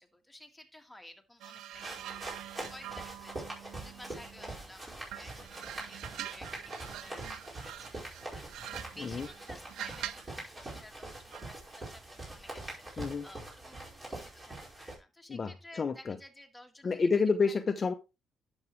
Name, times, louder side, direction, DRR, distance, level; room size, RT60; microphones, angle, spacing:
voice 1, 0.0-17.2 17.5-17.6, left 1 dB, 5° left, 3 dB, 1.9 m, -54 dB
Dragging metal stick on a steel wheel, 1.4-4.6 5.1-10.4 11.3-11.6, right 12 dB, 85° right, 0.5 m, -45 dB
sound 1, 1.8-15.0, right 2 dB, 30° right, 5.1 m, -44 dB
voice 2, 15.3-16.2 16.8-17.9, left 4 dB, 40° left, 8 dB, 0.7 m, -29 dB
10.5 x 7.2 x 3.2 m, 0.27 s
cardioid pair, 90°, 0 cm